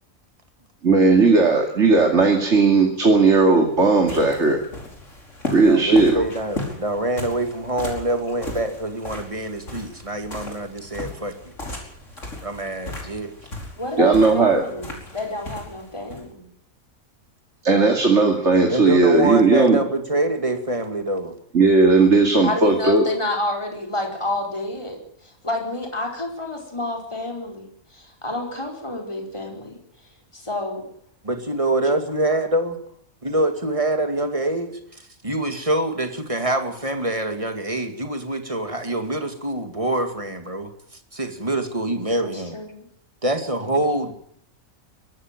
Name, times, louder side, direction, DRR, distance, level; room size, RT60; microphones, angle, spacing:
voice 1, 0.8-4.6 5.5-6.2 14.0-14.6 17.6-19.8 21.5-23.0, right 3 dB, 55° right, 3 dB, 2.9 m, -16 dB
sound 1, 3.4-16.3, left 2 dB, 60° left, 5.4 m, -36 dB
voice 2, 5.6-11.5 12.4-13.3 18.7-21.4 31.2-32.8 33.2-42.6 43.2-44.1, right 1 dB, 25° right, 6 dB, 2.5 m, -25 dB
voice 3, 13.8-16.5 22.4-29.8 30.3-30.8 42.2-42.9 43.6-43.7, left 2 dB, 20° left, 1 dB, 4.8 m, -29 dB
23.0 x 14.0 x 9.1 m, 0.69 s
omnidirectional pair, 1.5 m